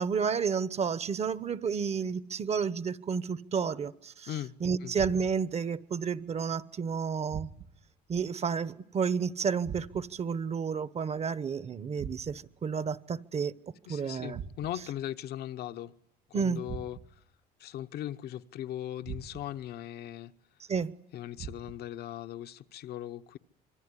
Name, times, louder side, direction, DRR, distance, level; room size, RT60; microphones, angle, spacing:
voice 1, 0.0-4.3 4.6-7.5 8.1-13.5 13.9-14.4 16.3-16.6 20.7-20.9, right 6 dB, 40° right, 1.0 m, -31 dB
sound 1, 4.9-5.6 7.3-7.9 9.6-10.3 12.0-12.6 14.3-14.9 16.6-17.3 19.0-19.7 21.4-22.0, right 7 dB, 70° right, 3.3 m, -43 dB
voice 2, 13.9-15.9 16.3-17.0 17.6-20.3 21.1-23.4, left 12 dB, 70° left, 1.0 m, -39 dB
26.0 x 23.5 x 9.8 m
cardioid pair, 110°, 17 cm